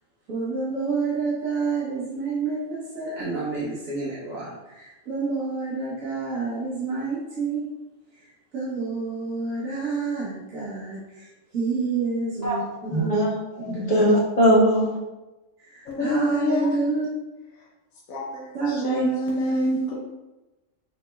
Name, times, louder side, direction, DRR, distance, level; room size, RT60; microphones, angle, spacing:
voice 1, 0.3-7.7 8.2-13.3 13.7-13.9 15.6-17.1 18.5-19.1 19.6-19.8, right 4 dB, 85° right, -8 dB, 1.4 m, -28 dB
voice 2, 12.9-15.0, equal, 30° left, -7 dB, 1.5 m, -20 dB
voice 3, 15.8-16.7 17.5-17.7 18.1-20.0, equal, 85° left, -3 dB, 1.2 m, -26 dB
7.0 x 3.1 x 2.3 m, 1.1 s
omnidirectional pair, 1.4 m